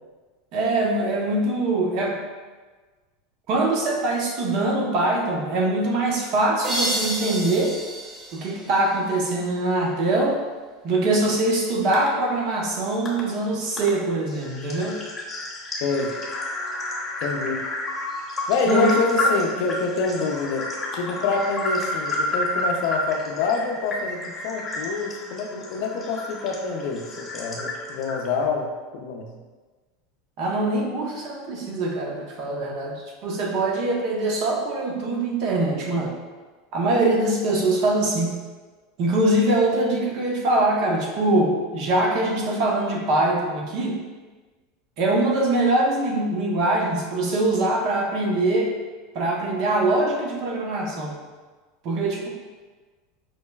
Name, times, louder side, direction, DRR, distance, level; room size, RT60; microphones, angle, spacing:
voice 1, 0.5-2.2 3.5-7.7 8.3-10.4 10.8-15.0 18.7-19.0 19.2-19.3 30.4-36.1 36.7-38.3 39.0-44.0 45.0-48.7 49.1-51.2 51.8-52.3, right 2 dB, 55° right, -1 dB, 0.7 m, -23 dB
sound 1, 6.6-9.4, equal, 25° right, 0.7 m, -30 dB
sound 2, 11.9-12.1 13.1-13.2 13.8-13.9 14.3-28.5, left 1 dB, 15° left, 0.9 m, -30 dB
voice 2, 15.8-16.1 17.2-17.7 18.5-29.3, left 4 dB, 65° left, 3 dB, 0.5 m, -26 dB
5.2 x 2.1 x 2.3 m, 1.4 s
hypercardioid pair, 105°, 0 cm